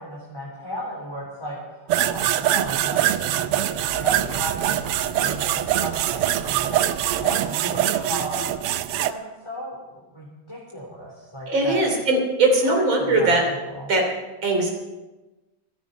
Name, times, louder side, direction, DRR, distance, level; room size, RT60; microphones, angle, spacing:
voice 1, 0.0-8.6 9.1-11.8 12.6-13.9, equal, 10° left, -5 dB, 3.5 m, -35 dB
sound 1, 1.9-9.1, right 12 dB, 80° right, 1.5 m, -23 dB
sound 2, 3.8-7.3, left 2 dB, 50° left, 4.5 m, -41 dB
voice 2, 11.5-13.4 13.9-14.0 14.4-14.7, right 2 dB, 60° right, 2 dB, 3.9 m, -20 dB
25.5 x 10.0 x 4.2 m, 1.1 s
omnidirectional pair, 2.4 m